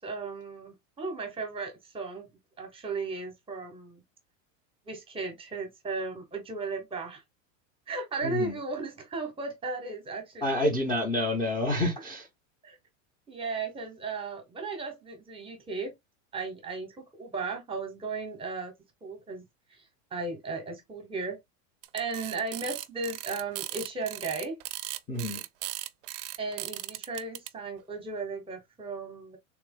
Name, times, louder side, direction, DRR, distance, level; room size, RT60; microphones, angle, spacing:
voice 1, 0.0-2.3 2.6-4.0 4.9-7.2 7.9-10.5 12.6-12.8 13.3-15.9 16.3-18.7 19.0-19.4 20.1-21.4 21.9-24.6 26.4-29.4, right 3 dB, 15° right, 0.8 m, -35 dB
voice 2, 8.2-8.6 10.4-12.3 25.1-25.4, left 1 dB, 10° left, 0.6 m, -28 dB
sound 1, 21.8-27.5, right 16 dB, 45° right, 0.4 m, -37 dB
3.4 x 2.9 x 3.6 m
supercardioid pair, 160°, 39 cm